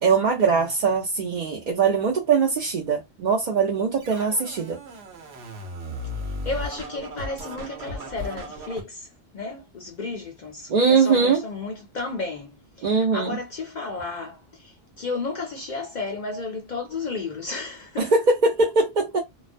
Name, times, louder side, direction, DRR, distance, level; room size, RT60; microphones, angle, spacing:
voice 1, 0.0-4.8 10.7-11.4 12.8-13.4 18.0-19.2, right 5 dB, 55° right, 0.6 m, -21 dB
Scratching (performance technique), 4.0-8.8, equal, 85° right, 1.0 m, -36 dB
voice 2, 6.5-9.1 9.3-18.1, left 3 dB, 55° left, 0.5 m, -33 dB
2.3 x 2.1 x 2.5 m
omnidirectional pair, 1.1 m